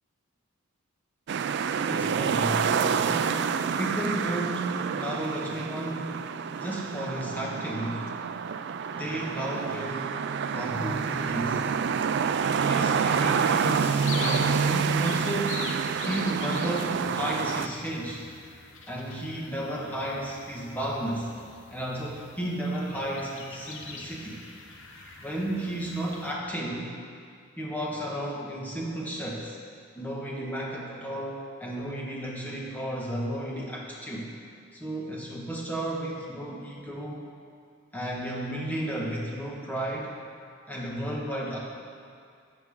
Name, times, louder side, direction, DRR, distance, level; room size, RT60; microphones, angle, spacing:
sound 1, 1.3-17.7, right 6 dB, 55° right, 0.3 m, -28 dB
voice 1, 1.7-8.1 8.9-11.6 12.6-15.7 16.0-18.3 18.9-21.3 21.7-24.4 25.2-26.9 27.6-29.6 29.9-34.3 34.7-37.3 37.9-40.1 40.7-41.6, right 1 dB, 10° left, -3 dB, 1.4 m, -33 dB
sound 2, 10.7-26.3, left 3 dB, 60° left, 1.0 m, -44 dB
13.0 x 8.3 x 3.7 m, 2.3 s
head